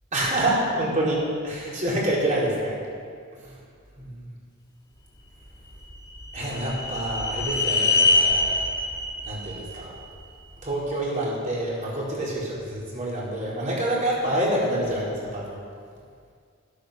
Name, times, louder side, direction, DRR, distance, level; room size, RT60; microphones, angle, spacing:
voice 1, 0.1-2.8 3.4-3.5 4.0-4.3 6.3-8.6 9.2-9.9 10.6-15.6, right 1 dB, 40° right, -5 dB, 4.2 m, -27 dB
sound 1, 5.5-10.7, left 3 dB, 20° left, 2.9 m, -25 dB
13.0 x 13.0 x 6.8 m, 2.2 s
head